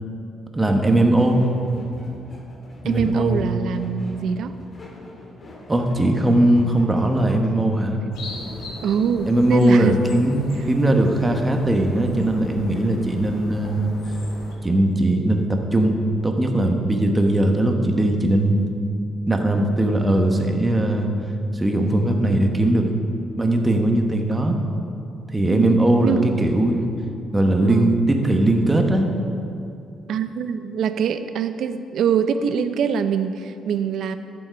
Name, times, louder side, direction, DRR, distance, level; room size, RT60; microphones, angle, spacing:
voice 1, 0.5-1.4 2.8-3.6 5.7-8.0 9.3-13.9 14.6-16.0 16.2-18.6 19.3-21.1 21.5-22.9 23.4-24.6 25.3-26.8 27.3-29.0, right 1 dB, 15° right, 3 dB, 1.1 m, -19 dB
sound 1, 1.2-7.7, left 1 dB, 35° left, 1.7 m, -42 dB
voice 2, 2.8-4.6 8.8-10.2 10.6-10.7 25.5-26.4 27.6-28.0 30.1-34.2, right 7 dB, 70° right, 10 dB, 0.5 m, -24 dB
sound 2, 8.1-14.5, left 1 dB, 85° left, 1.7 m, -38 dB
11.5 x 7.1 x 5.1 m, 2.6 s
cardioid pair, 105°, 0 cm